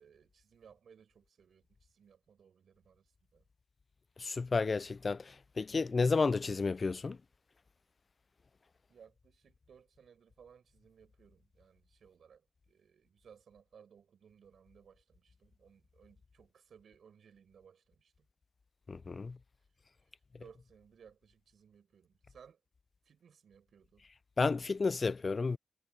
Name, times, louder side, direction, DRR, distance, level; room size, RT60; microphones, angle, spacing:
voice 1, 0.0-3.0 3.3-3.4 8.9-18.3 20.4-22.6 23.1-24.1, right 7 dB, 85° right, 7.4 m, -61 dB
voice 2, 4.2-7.2 18.9-19.4 24.4-25.6, left 4 dB, 45° left, 0.3 m, -31 dB
cardioid pair, 80°, 0 cm